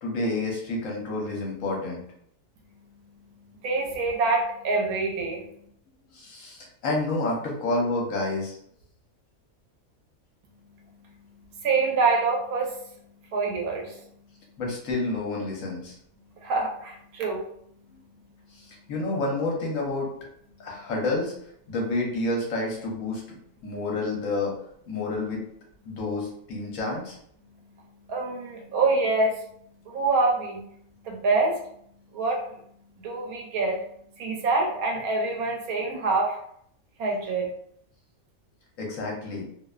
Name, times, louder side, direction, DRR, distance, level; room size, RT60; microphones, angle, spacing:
voice 1, 0.0-2.0 6.1-8.6 14.6-16.0 18.5-20.1 20.6-21.3 21.7-24.5 24.9-25.4 25.9-27.2 38.8-39.5, left 2 dB, 70° left, -1 dB, 1.0 m, -29 dB
voice 2, 2.7-5.5 10.5-14.1 16.4-17.4 25.9-26.0 27.4-29.5 29.8-30.6 31.0-31.6 32.1-32.6 32.9-33.8 34.2-36.4 37.0-37.5, right 3 dB, 85° right, 0 dB, 1.1 m, -27 dB
2.7 x 2.1 x 2.3 m, 0.68 s
omnidirectional pair, 1.5 m